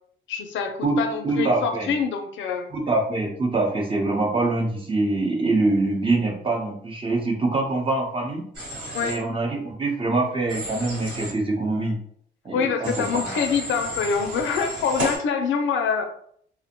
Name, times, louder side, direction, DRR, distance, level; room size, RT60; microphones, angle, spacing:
voice 1, 0.3-2.7 8.9-9.2 12.5-16.1, left 6 dB, 75° left, 5 dB, 0.5 m, -25 dB
voice 2, 0.8-1.9 2.7-8.4 9.0-12.0 12.4-13.4, right 2 dB, 25° right, -1 dB, 0.8 m, -24 dB
Human voice / Train, 8.5-9.1 10.5-11.3 12.8-15.2, equal, 70° right, 1.5 m, -32 dB
2.5 x 2.1 x 2.9 m, 0.64 s
cardioid pair, 90°, 20 cm